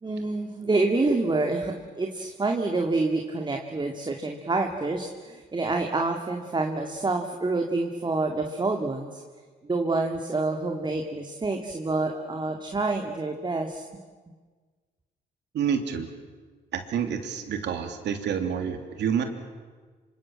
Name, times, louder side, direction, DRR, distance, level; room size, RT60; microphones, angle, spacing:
voice 1, 0.0-9.2 9.6-13.8, right 3 dB, 25° right, 3 dB, 2.4 m, -27 dB
voice 2, 15.5-16.1 16.7-19.2, right 7 dB, 75° right, 6 dB, 3.2 m, -28 dB
27.0 x 25.5 x 7.6 m, 1.5 s
cardioid pair, 85°, 18 cm